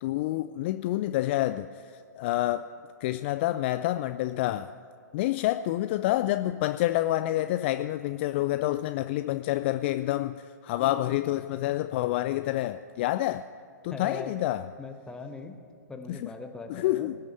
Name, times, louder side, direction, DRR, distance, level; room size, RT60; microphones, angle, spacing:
voice 1, 0.0-2.7 3.0-4.8 5.1-13.5 13.8-14.6 16.1-16.2 16.7-17.2, left 15 dB, 40° left, 0.3 m, -28 dB
voice 2, 13.9-14.3 14.8-15.6 15.9-17.1, left 4 dB, 10° left, 1.1 m, -40 dB
18.5 x 6.4 x 9.5 m
figure-of-eight pair, 120°, 9 cm